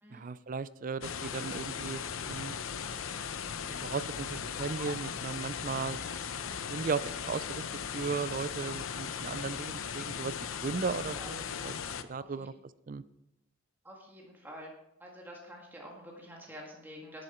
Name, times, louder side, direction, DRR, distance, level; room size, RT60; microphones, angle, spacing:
voice 1, 0.1-2.5 3.8-6.0 6.7-7.6 7.9-10.3 10.6-11.7 12.1-12.5 12.9-13.0, right 5 dB, 40° right, 16 dB, 0.4 m, -36 dB
sound 1, 1.0-12.0, left 7 dB, 80° left, 0.7 m, -38 dB
voice 2, 11.1-11.7 12.2-12.5 13.8-14.7 15.0-17.2, equal, 10° right, -2 dB, 1.8 m, -48 dB
11.0 x 9.6 x 4.4 m, 0.88 s
head